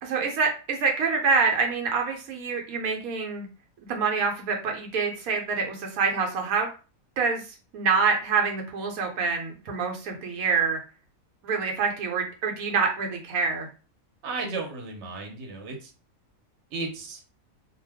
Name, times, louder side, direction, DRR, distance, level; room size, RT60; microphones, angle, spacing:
voice 1, 0.0-3.5 3.9-6.7 7.2-7.4 7.7-10.8 11.4-13.7, right 5 dB, 85° right, 2 dB, 1.1 m, -26 dB
voice 2, 14.2-15.9 16.7-17.2, right 3 dB, 60° right, 2 dB, 1.0 m, -34 dB
2.4 x 2.2 x 3.3 m, 0.34 s
omnidirectional pair, 1.5 m